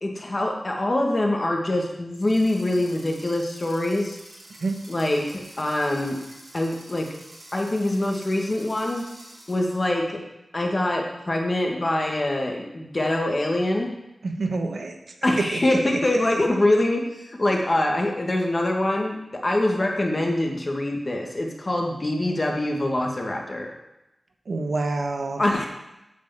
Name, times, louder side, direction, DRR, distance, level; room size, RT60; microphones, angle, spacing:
voice 1, 0.0-4.2 4.9-6.2 6.5-7.1 7.5-9.1 9.5-10.2 10.5-13.9 15.2-19.2 19.4-23.7 25.4-25.7, left 1 dB, 35° left, 1 dB, 1.8 m, -24 dB
sound 1, 2.1-9.9, right 1 dB, 50° right, 4.1 m, -47 dB
voice 2, 14.2-15.0 24.5-25.4, right 3 dB, 75° right, 4 dB, 1.1 m, -27 dB
8.9 x 5.0 x 7.3 m, 0.92 s
wide cardioid pair, 90°, 0 cm